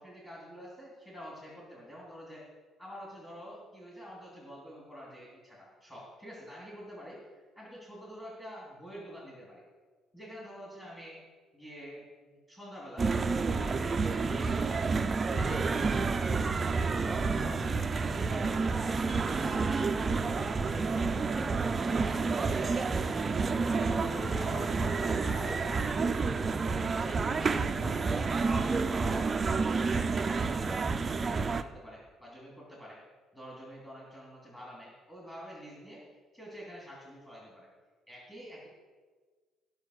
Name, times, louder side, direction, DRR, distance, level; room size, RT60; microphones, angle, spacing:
voice 1, 0.0-2.5 2.8-9.6 10.1-11.2 11.5-14.8 15.2-17.6 17.9-21.5 21.8-22.5 22.9-23.3 23.7-26.6 27.0-28.1 28.4-33.0 33.3-36.0 36.3-37.7 38.1-38.7, equal, 15° left, -6 dB, 2.5 m, -47 dB
sound 1, 13.0-31.6, right 4 dB, 20° right, 0.4 m, -29 dB
14.5 x 4.9 x 6.4 m, 1.4 s
cardioid pair, 170°, 0 cm